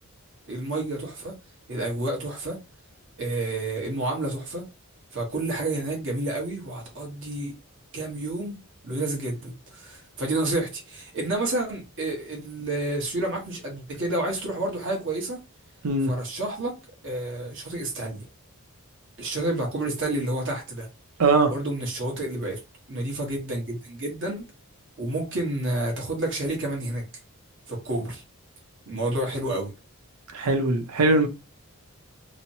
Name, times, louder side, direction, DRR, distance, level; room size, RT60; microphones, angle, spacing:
voice 1, 0.5-1.3 1.7-2.6 3.2-4.6 5.1-7.5 7.9-15.4 16.0-16.7 17.0-18.3 19.2-20.9 21.5-22.6 22.9-24.5 25.0-27.0 27.7-28.2 28.9-29.7, right 2 dB, 55° right, 1.2 m, -29 dB
voice 2, 21.2-21.5 30.3-31.3, right 3 dB, 80° right, 0.6 m, -21 dB
3.1 x 2.0 x 2.7 m
head